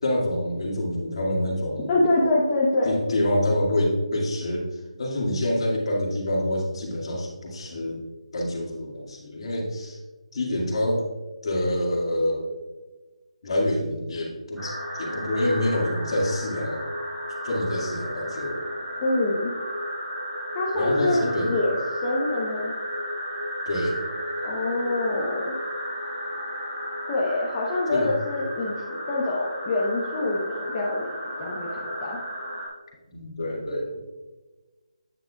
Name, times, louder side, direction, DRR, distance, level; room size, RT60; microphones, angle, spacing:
voice 1, 0.0-1.9 2.8-4.6 5.0-8.0 8.3-10.0 10.3-11.1 11.4-12.5 13.4-16.9 17.4-18.7 20.7-21.5 23.7-24.0 27.9-28.1 33.1-33.9, left 1 dB, 50° left, -2 dB, 2.0 m, -26 dB
voice 2, 1.9-3.0 19.0-19.5 20.5-22.7 24.4-25.5 27.1-32.2, left 2 dB, 25° left, -4 dB, 0.9 m, -26 dB
sound 1, 14.6-32.7, equal, 5° right, 2.4 m, -33 dB
9.1 x 7.7 x 2.3 m, 1.2 s
figure-of-eight pair, 160°, 4 cm